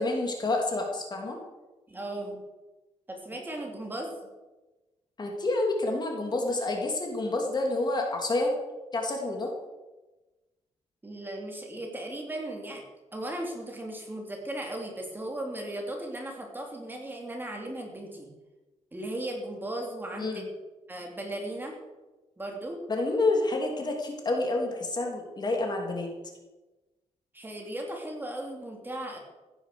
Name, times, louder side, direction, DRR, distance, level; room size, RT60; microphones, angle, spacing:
voice 1, 0.0-1.4 5.2-8.5 8.9-9.5 20.2-20.4 22.9-26.1, left 2 dB, 35° left, 1 dB, 2.9 m, -28 dB
voice 2, 1.9-2.5 3.1-4.1 11.0-12.8 13.1-18.3 18.9-20.5 20.9-21.8 22.4-22.8 27.3-29.2, right 1 dB, 15° right, 1 dB, 3.0 m, -36 dB
15.5 x 10.0 x 6.8 m, 1.1 s
wide cardioid pair, 145°, 13 cm